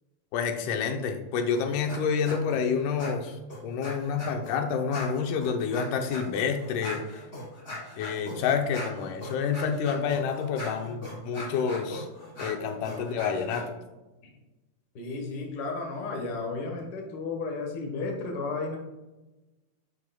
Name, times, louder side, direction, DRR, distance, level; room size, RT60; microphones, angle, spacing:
voice 1, 0.3-3.4 3.6-7.0 8.0-12.1 12.4-13.7, left 6 dB, 90° left, 5 dB, 2.3 m, -28 dB
sound 1, 1.5-2.0 2.2-2.6 3.0-4.5 4.9-13.6, left 1 dB, 30° left, 1.6 m, -40 dB
voice 2, 14.9-18.8, left 3 dB, 60° left, 2 dB, 1.0 m, -33 dB
10.0 x 4.8 x 2.2 m, 1.1 s
omnidirectional pair, 3.6 m